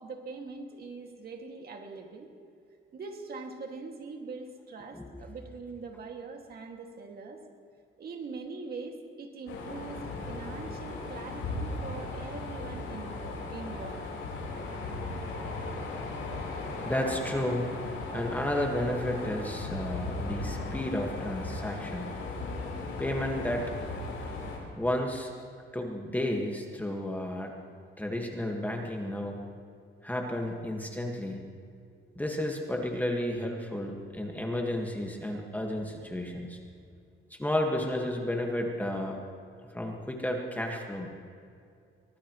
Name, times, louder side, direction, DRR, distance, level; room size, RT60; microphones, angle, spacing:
voice 1, 0.0-2.3 2.9-7.4 8.0-10.0 10.3-14.1, right 4 dB, 50° right, 2 dB, 2.2 m, -42 dB
sound 1, 9.5-24.6, left 3 dB, 85° left, 4.7 m, -37 dB
voice 2, 16.8-17.7 18.1-22.1 23.0-23.7 24.8-25.3 25.7-27.5 28.0-29.4 30.0-31.4 32.1-36.6 37.3-39.2 39.7-41.1, left 1 dB, 10° left, 1 dB, 1.7 m, -32 dB
23.5 x 18.5 x 3.1 m, 2.4 s
cardioid pair, 115°, 20 cm